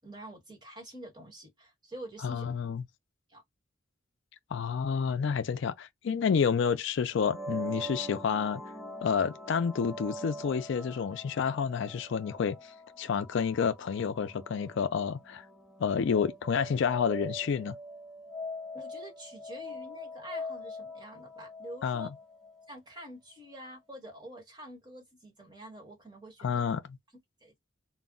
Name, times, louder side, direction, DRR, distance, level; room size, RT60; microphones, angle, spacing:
voice 1, 0.0-2.5 3.3-3.4 18.7-22.1 22.7-26.6 27.4-27.6, right 1 dB, 20° right, 1.3 m, -47 dB
voice 2, 2.2-2.8 4.5-8.6 9.0-12.6 13.0-15.4 15.8-17.8 21.8-22.1 26.4-26.8, left 6 dB, 65° left, 0.4 m, -29 dB
sound 1, 7.1-22.8, left 1 dB, ahead, 0.8 m, -43 dB
2.2 x 2.0 x 3.7 m
head